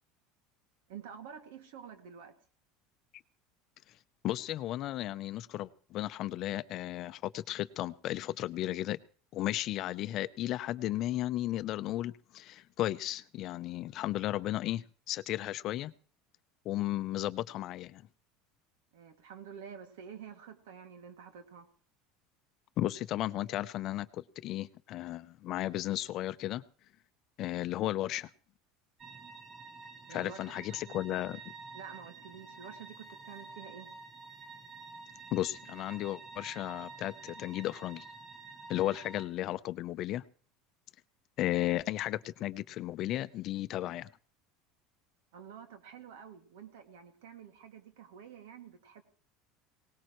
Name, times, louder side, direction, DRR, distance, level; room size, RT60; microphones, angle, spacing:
voice 1, 0.9-2.4 18.9-21.7 30.1-30.4 30.7-30.8 31.1-31.2 31.7-33.9 45.3-49.0, right 7 dB, 90° right, 6 dB, 2.3 m, -49 dB
voice 2, 4.2-9.0 9.3-15.9 16.6-18.0 22.8-26.6 27.4-28.3 30.1-31.4 35.3-38.0 38.7-40.2 41.4-44.1, left 14 dB, 45° left, 14 dB, 0.7 m, -34 dB
sound 1, 29.0-39.3, right 3 dB, 25° right, 1.2 m, -49 dB
20.5 x 19.0 x 3.1 m, 0.41 s
supercardioid pair, 140°, 0 cm